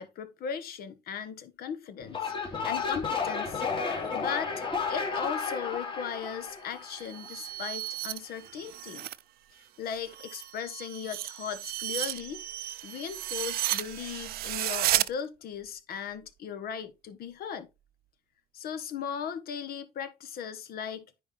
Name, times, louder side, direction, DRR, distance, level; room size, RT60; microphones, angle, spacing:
voice 1, 0.0-3.6 4.1-9.1 9.8-12.4 12.8-17.7 18.5-21.1, left 7 dB, 65° left, 1.2 m, -37 dB
sound 1, 2.0-7.3, left 5 dB, 30° left, 2.4 m, -32 dB
sound 2, 6.8-9.2 9.6-15.1, right 14 dB, 65° right, 0.5 m, -33 dB
9.6 x 4.2 x 3.3 m
cardioid pair, 110°, 17 cm